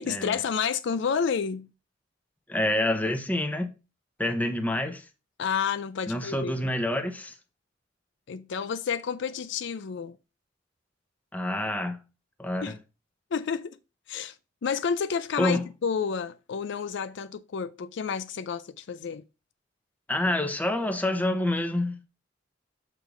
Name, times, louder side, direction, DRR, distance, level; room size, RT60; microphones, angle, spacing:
voice 1, 0.0-1.7 5.4-6.5 8.3-10.2 12.6-12.7 13.3-13.8 14.1-14.4 14.6-19.2, left 6 dB, 65° left, 0.4 m, -30 dB
voice 2, 2.5-3.7 4.2-5.0 6.1-7.3 11.3-12.0 12.4-12.7 15.4-15.6 20.1-22.1, left 1 dB, 10° left, 0.8 m, -27 dB
6.6 x 5.0 x 3.8 m
head